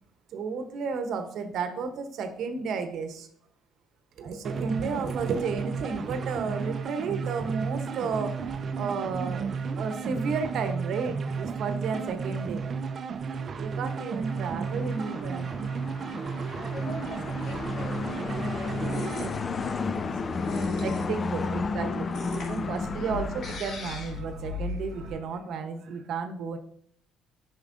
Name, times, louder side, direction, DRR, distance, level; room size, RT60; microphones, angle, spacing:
voice 1, 0.3-3.3 4.2-9.5 9.7-12.7 13.6-15.5 18.9-19.0 20.8-26.6, right 5 dB, 65° right, 8 dB, 0.9 m, -33 dB
sound 1, 4.4-19.3, right 5 dB, 45° right, 0.4 m, -33 dB
sound 2, 14.0-23.6, left 4 dB, 35° left, 0.4 m, -33 dB
voice 2, 16.5-21.1 21.7-23.3, left 1 dB, 75° left, -3 dB, 3.0 m, -44 dB
sound 3, 17.0-25.1, left 2 dB, 55° left, 1.8 m, -39 dB
8.2 x 5.9 x 2.6 m, 0.64 s
supercardioid pair, 80°, 0 cm